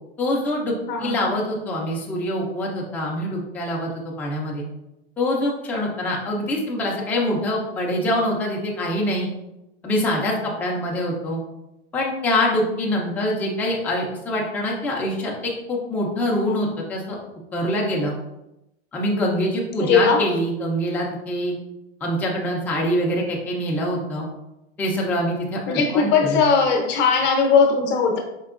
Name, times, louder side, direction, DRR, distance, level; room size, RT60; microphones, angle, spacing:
voice 1, 0.2-0.7 1.0-3.9 4.2-4.6 5.2-9.3 9.8-11.4 11.9-17.2 17.5-18.1 18.9-21.5 22.0-24.3 24.8-26.4, left 1 dB, 5° left, -3 dB, 0.4 m, -24 dB
voice 2, 0.9-1.3 19.8-20.3 25.7-28.2, left 5 dB, 35° left, 2 dB, 0.7 m, -19 dB
4.5 x 2.8 x 2.4 m, 0.90 s
supercardioid pair, 135°, 32 cm